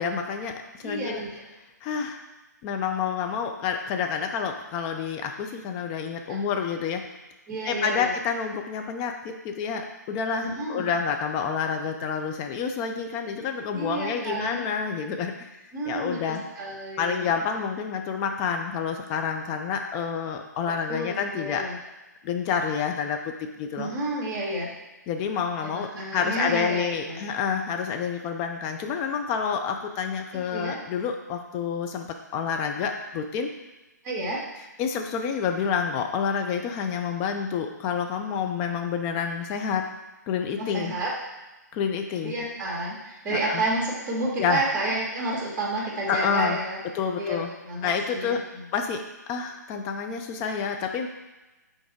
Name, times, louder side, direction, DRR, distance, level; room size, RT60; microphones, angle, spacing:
voice 1, 0.0-1.2 1.8-2.2 2.6-7.0 7.7-15.5 15.9-16.4 17.0-21.6 22.2-23.3 23.6-23.9 25.1-33.5 34.8-39.9 40.3-40.9 41.7-42.3 43.3-43.6 44.4-44.6 46.1-46.6 46.9-47.5 47.8-48.4 48.7-49.0 49.3-51.1, left 6 dB, 25° left, 4 dB, 0.6 m, -28 dB
voice 2, 0.8-1.4 6.3-6.4 7.5-8.1 10.4-10.9 13.7-14.6 15.7-17.3 20.9-21.8 23.8-24.7 25.6-27.2 30.4-30.8 34.0-34.4 40.6-41.1 42.2-46.8 47.2-48.4, right 2 dB, 25° right, -4 dB, 2.0 m, -30 dB
6.2 x 3.9 x 4.6 m, 1.1 s
figure-of-eight pair, 130°, 10 cm